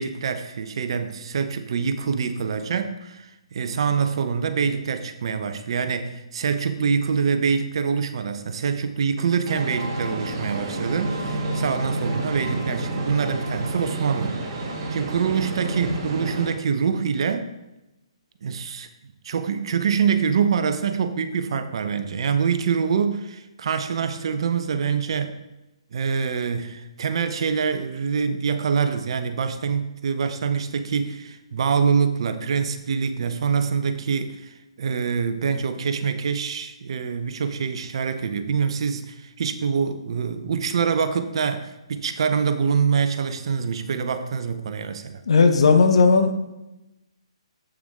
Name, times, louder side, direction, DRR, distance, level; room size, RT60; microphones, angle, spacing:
voice 1, 0.0-14.4 14.9-17.5 18.4-18.9 19.2-25.4 25.9-34.5 34.8-45.2, right 6 dB, 55° right, 9 dB, 0.8 m, -25 dB
sound 1, 9.5-16.5, right 2 dB, 40° right, 1.8 m, -29 dB
voice 2, 45.3-46.3, left 4 dB, 65° left, 7 dB, 1.1 m, -16 dB
8.0 x 7.0 x 3.7 m, 0.94 s
hypercardioid pair, 140°, 3 cm